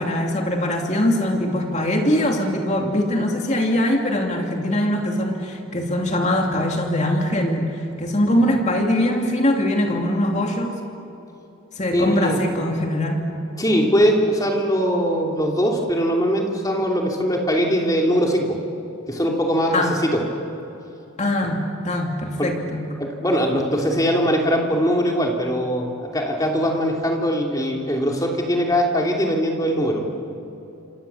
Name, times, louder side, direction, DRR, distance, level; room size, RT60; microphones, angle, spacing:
voice 1, 0.0-10.8 11.7-13.2 19.7-20.0 21.2-22.9, left 1 dB, 30° left, 2 dB, 2.7 m, -22 dB
voice 2, 11.9-12.4 13.6-18.6 19.1-20.2 22.4-22.5 23.0-30.0, equal, 15° left, 0 dB, 2.8 m, -21 dB
28.5 x 27.0 x 7.1 m, 2.9 s
head